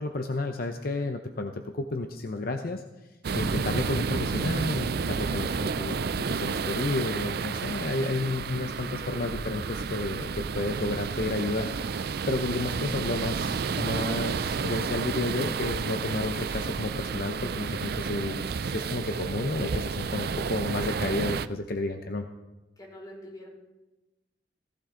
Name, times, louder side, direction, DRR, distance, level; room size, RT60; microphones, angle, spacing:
voice 1, 0.0-2.8 3.3-22.3, left 2 dB, 55° left, 6 dB, 0.8 m, -31 dB
sound 1, 3.2-21.5, right 5 dB, 60° right, 0.5 m, -31 dB
voice 2, 22.8-23.5, left 1 dB, 25° left, -3 dB, 5.4 m, -44 dB
17.0 x 15.5 x 3.8 m, 1.1 s
head